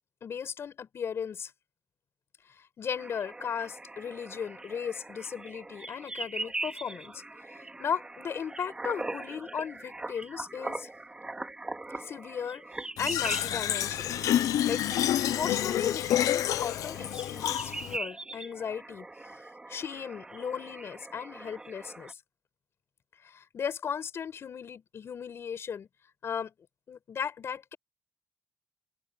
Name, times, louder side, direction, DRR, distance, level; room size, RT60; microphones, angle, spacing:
voice 1, 0.2-1.5 2.5-7.2 7.5-10.9 11.9-14.8 15.2-19.1 19.7-22.2 23.2-25.9 26.2-26.5 26.9-27.8, left 7 dB, 50° left, 5.3 m, -36 dB
sound 1, 3.0-22.1, right 2 dB, 15° right, 3.0 m, -41 dB
Fill (with liquid), 13.0-18.0, left 12 dB, 85° left, 0.9 m, -28 dB
cardioid pair, 130°, 6 cm